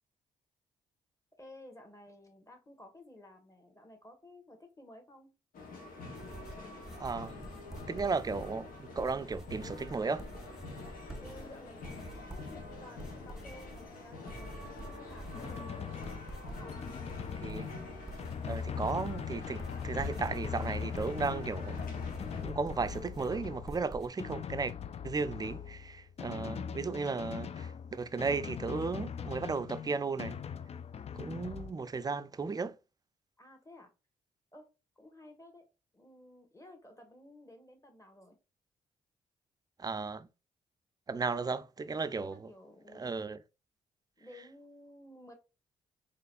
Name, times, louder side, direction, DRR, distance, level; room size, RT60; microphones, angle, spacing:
voice 1, 1.4-5.3 11.1-16.0 16.4-16.8 33.4-33.9 34.5-34.7 34.9-35.7 35.9-38.4 42.2-43.2 44.2-45.3, left 1 dB, 20° left, 1.7 m, -54 dB
sound 1, 5.5-22.4, left 3 dB, 75° left, 1.1 m, -46 dB
sound 2, 6.1-24.1, right 1 dB, 5° right, 0.9 m, -48 dB
voice 2, 6.9-7.3 7.9-10.2 17.4-17.7 18.4-21.8 22.4-24.7 25.0-30.4 31.2-32.8 39.8-40.3 41.1-42.5 42.9-43.4, right 4 dB, 25° right, 0.5 m, -35 dB
Drum, 15.3-31.7, left 7 dB, 45° left, 0.4 m, -41 dB
3.9 x 3.1 x 2.5 m
supercardioid pair, 50°, 15 cm